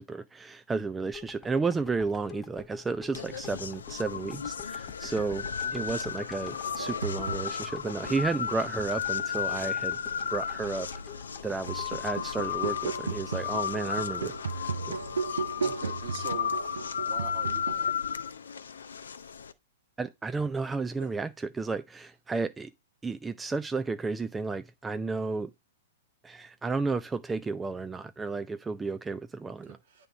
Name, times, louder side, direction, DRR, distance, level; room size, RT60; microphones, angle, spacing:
voice 1, 0.0-5.5 5.7-10.0 10.3-10.9 11.4-15.0 20.0-22.7 23.0-25.5 26.2-29.8, right 4 dB, 10° right, 0.3 m, -32 dB
sound 1, 1.1-13.3 13.7-13.8, left 8 dB, 15° left, 0.8 m, -49 dB
sound 2, 3.1-19.5, left 7 dB, 75° left, 0.5 m, -34 dB
voice 2, 5.6-5.9 7.6-8.2 15.6-16.7 17.0-17.9 21.0-21.1 29.7-30.1, right 6 dB, 60° right, 1.7 m, -43 dB
sound 3, 6.6-7.9 8.8-10.0 10.4-17.9, right 5 dB, 80° right, 0.4 m, -36 dB
9.0 x 3.5 x 4.0 m
hypercardioid pair, 110°, 0 cm